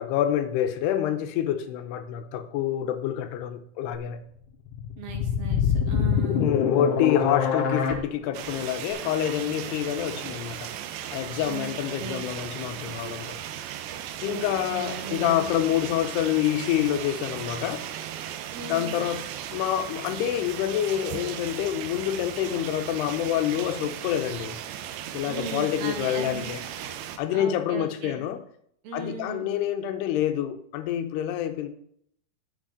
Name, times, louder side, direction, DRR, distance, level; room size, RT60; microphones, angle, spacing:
voice 1, 0.0-4.3 6.4-10.7 11.1-13.4 14.2-17.9 18.7-19.3 19.5-24.6 25.1-26.6 27.2-28.4 28.9-31.7, left 11 dB, 90° left, 2.9 m, -27 dB
sound 1, 4.7-7.9, left 7 dB, 65° left, 2.5 m, -24 dB
voice 2, 5.0-6.5 11.4-12.3 14.3-15.6 18.5-19.1 25.3-27.0 27.3-28.3 28.8-29.5, right 5 dB, 65° right, 3.2 m, -38 dB
sound 2, 8.3-27.2, right 10 dB, 90° right, 2.8 m, -37 dB
10.5 x 8.0 x 3.9 m
omnidirectional pair, 4.6 m